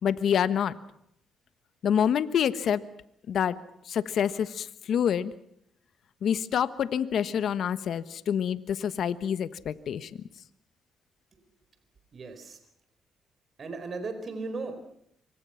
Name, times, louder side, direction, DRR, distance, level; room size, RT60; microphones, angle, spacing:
voice 1, 0.0-0.7 1.8-2.8 3.3-3.6 3.9-5.3 6.2-10.1, left 8 dB, 65° left, 13 dB, 1.3 m, -27 dB
voice 2, 12.1-12.6 13.6-15.0, right 3 dB, 45° right, 8 dB, 4.4 m, -36 dB
26.5 x 24.5 x 5.8 m, 0.72 s
cardioid pair, 90°, 0 cm